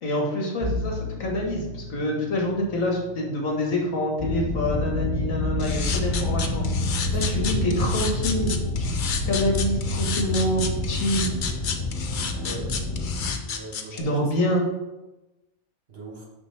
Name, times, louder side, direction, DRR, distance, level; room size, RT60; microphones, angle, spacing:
voice 1, 0.0-6.7 7.1-9.0 9.2-11.3 13.9-14.7, left 1 dB, 75° left, -1 dB, 1.8 m, -26 dB
Bowed string instrument, 0.6-5.7, left 2 dB, 25° right, 1.3 m, -37 dB
sound 1, 4.2-13.3, left 2 dB, ahead, 1.3 m, -27 dB
sound 2, 5.6-14.0, left 6 dB, 50° left, 0.6 m, -31 dB
voice 2, 7.1-7.7 12.3-12.7 13.4-14.3 15.9-16.2, right 1 dB, 50° right, -1 dB, 1.4 m, -39 dB
6.2 x 5.7 x 3.4 m, 1.0 s
omnidirectional pair, 1.4 m